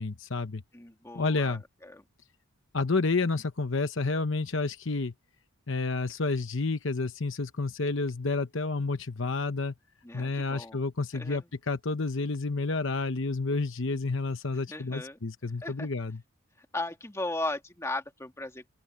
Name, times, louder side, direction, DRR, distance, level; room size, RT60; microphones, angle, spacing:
voice 1, 0.0-0.6 1.1-1.6 2.7-5.1 5.7-9.7 10.1-16.2, left 3 dB, 55° left, 1.0 m, -30 dB
voice 2, 0.7-2.0 10.0-10.8 11.1-11.4 14.7-15.2 15.6-15.9 16.7-18.7, left 2 dB, 10° left, 1.9 m, -37 dB
open air
head